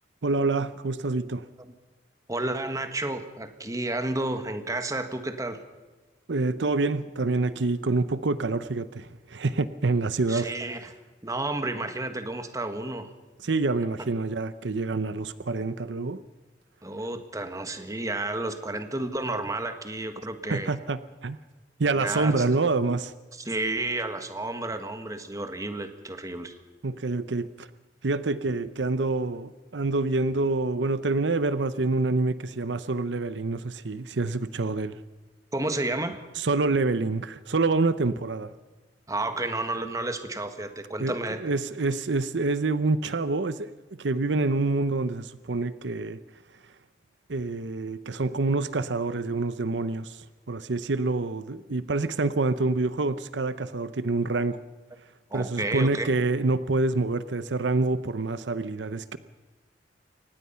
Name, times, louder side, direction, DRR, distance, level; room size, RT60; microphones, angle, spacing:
voice 1, 0.2-1.5 6.3-10.5 13.4-16.2 20.5-21.4 21.8-23.1 26.8-27.7 28.0-35.0 36.4-38.5 41.0-43.7 44.0-46.2 47.3-54.6 55.3-59.2, right 3 dB, 75° right, 14 dB, 0.8 m, -27 dB
voice 2, 2.3-5.6 10.3-10.9 11.2-13.1 16.8-20.7 21.9-22.4 23.4-26.6 35.5-36.2 39.1-41.5 55.3-56.1, right 2 dB, 20° right, 8 dB, 1.6 m, -31 dB
24.0 x 19.0 x 5.7 m, 1.3 s
head